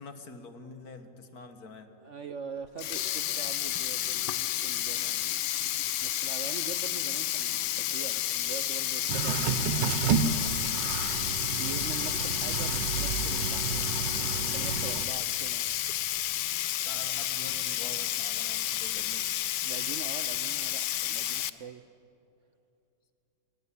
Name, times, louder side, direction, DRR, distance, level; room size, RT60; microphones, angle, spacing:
voice 1, 0.0-1.9 5.0-5.3 16.9-19.3 21.5-21.7, left 3 dB, 60° left, 8 dB, 2.0 m, -46 dB
voice 2, 2.0-5.1 6.0-10.8 11.5-15.8 19.7-21.8, right 7 dB, 60° right, 10 dB, 0.9 m, -43 dB
Sink (filling or washing), 2.7-21.5, left 13 dB, 75° left, 1.3 m, -31 dB
sound 1, 9.1-15.0, right 6 dB, 90° right, 1.6 m, -31 dB
21.0 x 20.5 x 9.8 m, 2.8 s
omnidirectional pair, 1.9 m